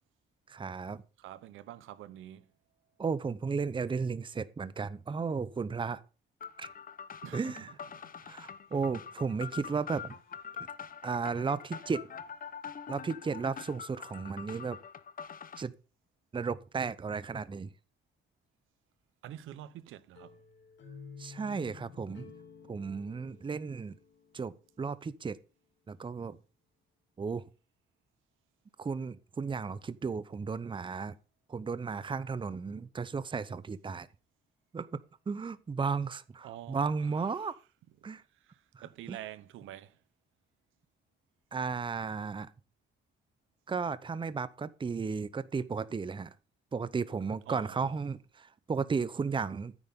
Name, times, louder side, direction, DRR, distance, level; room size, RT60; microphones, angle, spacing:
voice 1, 0.5-1.0 3.0-6.0 6.6-6.7 7.3-7.7 8.2-10.2 11.0-12.1 12.9-14.8 15.6-15.7 16.3-17.7 21.2-22.3 22.7-23.9 24.3-25.4 25.9-26.4 27.2-27.5 28.8-31.2 31.5-34.1 34.7-35.0 35.3-37.6 38.0-38.2 38.7-39.2 41.5-42.5 43.7-46.3 46.7-49.8, right 5 dB, 25° right, 0.7 m, -34 dB
voice 2, 1.2-2.5 7.2-7.5 8.0-8.1 19.2-20.4 36.4-36.9 38.4-40.0 47.5-48.0, right 12 dB, 85° right, 0.9 m, -46 dB
sound 1, 6.4-15.6, left 7 dB, 45° left, 0.9 m, -45 dB
sound 2, 20.1-25.0, left 6 dB, 65° left, 2.4 m, -52 dB
10.0 x 8.8 x 3.6 m
cardioid pair, 90°, 20 cm